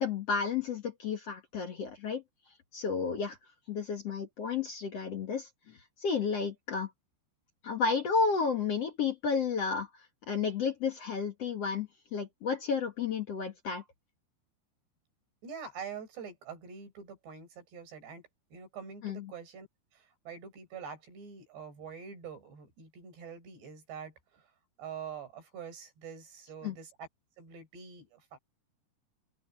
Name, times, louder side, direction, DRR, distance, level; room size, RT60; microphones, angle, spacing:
voice 1, 0.0-2.2 2.7-3.4 3.7-6.9 7.6-9.9 10.3-13.8 19.0-19.3 26.6-26.8, left 5 dB, 60° left, 1.7 m, -32 dB
voice 2, 15.4-18.2 18.5-19.7 19.9-24.5 24.8-27.1 27.4-28.4, right 6 dB, 70° right, 8.4 m, -45 dB
open air
omnidirectional pair, 5.2 m